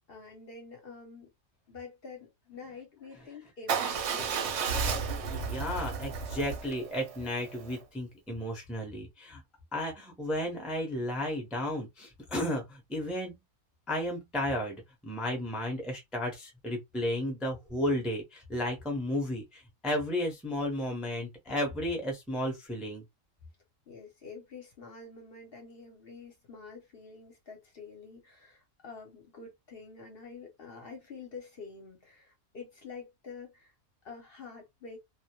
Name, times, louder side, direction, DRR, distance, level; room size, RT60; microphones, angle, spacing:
voice 1, 0.1-1.3 1.7-4.5 23.9-33.7 34.0-35.0, left 4 dB, 55° left, 0.7 m, -47 dB
Motorcycle / Engine starting / Idling, 3.7-7.8, right 5 dB, 65° right, 0.8 m, -33 dB
voice 2, 5.3-9.4 9.7-13.3 13.9-23.0, left 1 dB, ahead, 0.5 m, -33 dB
2.2 x 2.0 x 2.9 m
omnidirectional pair, 1.4 m